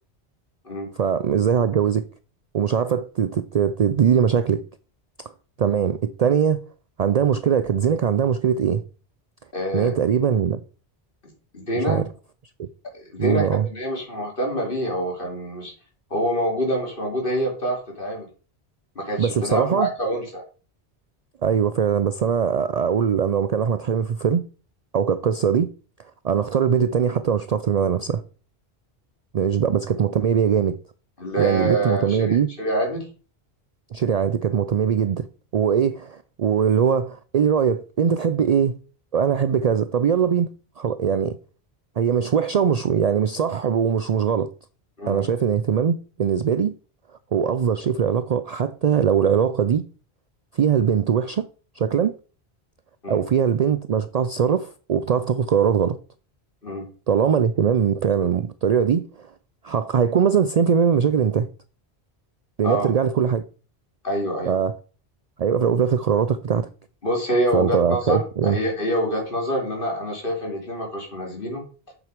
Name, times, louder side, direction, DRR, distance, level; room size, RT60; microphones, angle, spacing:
voice 1, 1.0-2.0 2.5-4.6 5.6-6.6 7.0-8.8 9.7-10.6 11.8-12.1 12.6-12.7 13.2-13.7 19.2-19.9 21.4-24.4 24.9-25.7 26.2-28.2 29.3-30.8 31.4-32.5 33.9-35.3 35.5-38.8 39.1-41.4 42.0-44.5 45.1-46.7 47.3-49.8 50.5-51.5 51.8-52.1 53.1-56.0 57.1-59.3 59.6-61.5 62.6-63.5 64.5-64.8 65.4-66.7 67.5-68.6, right 7 dB, 55° right, 0.4 m, -21 dB
voice 2, 9.5-9.9 11.5-12.0 12.9-15.7 16.1-18.3 18.9-20.4 31.2-33.0 45.0-45.3 53.0-53.2 56.6-56.9 62.6-62.9 64.0-64.6 67.0-71.6, equal, 55° left, 3.2 m, -26 dB
7.5 x 6.4 x 5.1 m
omnidirectional pair, 1.1 m